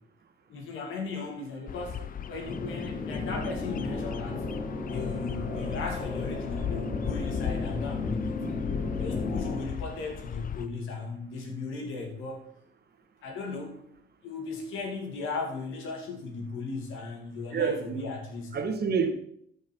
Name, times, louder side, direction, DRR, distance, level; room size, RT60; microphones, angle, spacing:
voice 1, 0.5-2.0 2.3-4.4 4.9-8.4 9.0-12.5 13.2-13.8 14.2-18.6, left 4 dB, 85° left, 2 dB, 2.5 m, -36 dB
Bird vocalization bird call bird song, 1.7-10.7, left 8 dB, 45° left, 0.6 m, -37 dB
sound 1, 2.4-9.6, left 3 dB, 60° left, 3.7 m, -34 dB
voice 2, 17.5-18.0 18.5-19.1, right 6 dB, 55° right, 7 dB, 1.5 m, -28 dB
12.5 x 5.4 x 4.5 m, 0.68 s
cardioid pair, 90°, 20 cm